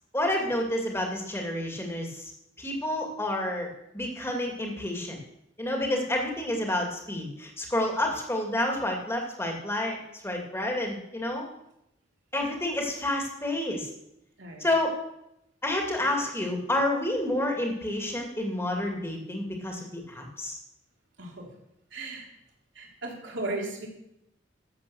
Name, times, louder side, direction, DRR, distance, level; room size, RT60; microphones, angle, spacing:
voice 1, 0.1-2.3 2.6-3.7 3.9-5.2 5.6-10.0 10.2-11.5 12.3-13.9 14.6-14.9 15.6-20.6, left 1 dB, 15° left, 1 dB, 2.4 m, -29 dB
voice 2, 14.4-14.7 21.2-21.5 21.9-22.3 22.7-23.9, right 2 dB, 70° right, -1 dB, 3.6 m, -36 dB
12.5 x 7.7 x 7.1 m, 0.81 s
head